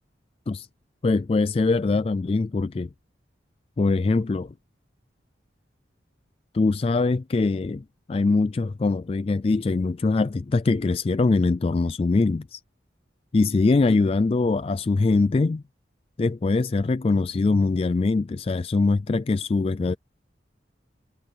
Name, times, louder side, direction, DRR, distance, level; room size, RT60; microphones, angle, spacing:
voice 1, 1.0-2.9 3.8-4.5 6.5-12.6 13.3-15.6 16.2-19.9, left 3 dB, 30° left, 0.3 m, -22 dB
head